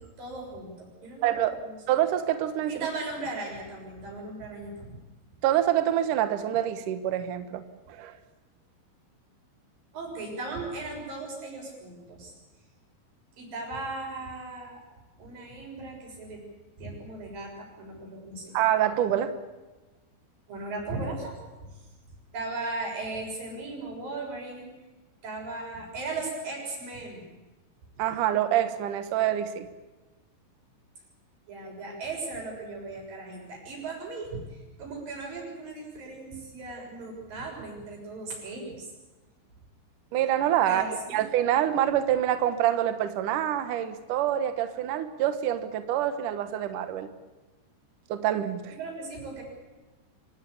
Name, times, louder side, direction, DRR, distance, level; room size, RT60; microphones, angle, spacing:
voice 1, 0.0-1.8 2.7-5.0 9.9-12.3 13.4-14.8 15.2-16.4 16.8-18.6 20.5-21.4 21.6-21.7 22.3-24.7 25.2-27.3 31.5-38.9 40.7-41.2 48.7-49.4, right 3 dB, 45° right, 0 dB, 8.2 m, -37 dB
voice 2, 1.2-1.6 1.9-2.8 5.4-8.2 18.5-19.3 28.0-29.7 40.1-40.8 41.1-47.1 48.1-48.7, right 11 dB, 90° right, 10 dB, 1.8 m, -26 dB
25.5 x 18.0 x 8.6 m, 1.2 s
omnidirectional pair, 5.8 m